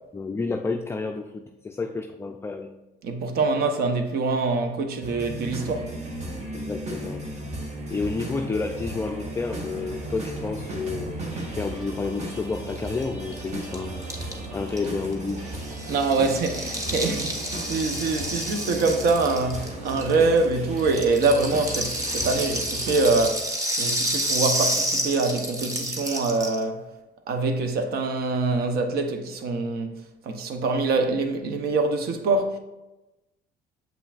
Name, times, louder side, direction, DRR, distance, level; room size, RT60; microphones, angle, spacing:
voice 1, 0.1-2.7 6.5-7.2 7.9-11.2 11.5-14.1 14.5-15.4, left 4 dB, 15° left, 0.4 m, -30 dB
voice 2, 3.0-5.9 15.9-26.9 27.3-32.6, right 3 dB, 65° right, 0.9 m, -24 dB
sound 1, 5.0-23.3, right 1 dB, 40° right, 1.4 m, -36 dB
sound 2, 7.4-20.4, right 1 dB, 85° right, 2.1 m, -44 dB
Rattle (instrument), 12.8-12.9 13.0-13.1 13.3-20.4 20.8-26.6, right 1 dB, 20° right, 1.1 m, -29 dB
7.4 x 5.8 x 2.4 m
cardioid pair, 110°, 17 cm